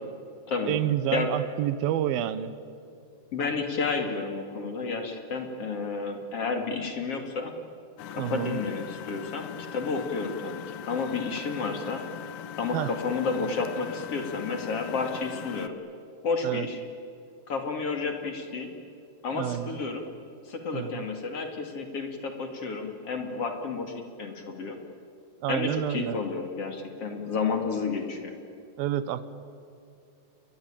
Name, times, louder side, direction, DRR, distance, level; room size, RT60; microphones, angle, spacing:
voice 1, 0.7-2.5 8.2-8.6 12.7-12.9 16.4-16.7 19.3-19.8 20.7-21.1 25.4-26.2 28.8-29.3, right 12 dB, 85° right, 14 dB, 2.9 m, -29 dB
voice 2, 3.3-7.5 8.1-12.0 12.6-15.7 16.2-16.8 17.5-18.7 19.2-20.0 20.5-24.8 25.5-28.3, left 4 dB, 45° left, 4 dB, 3.2 m, -31 dB
Engine, 8.0-15.7, left 11 dB, 75° left, 2.5 m, -40 dB
29.5 x 22.5 x 8.9 m, 2.6 s
omnidirectional pair, 4.1 m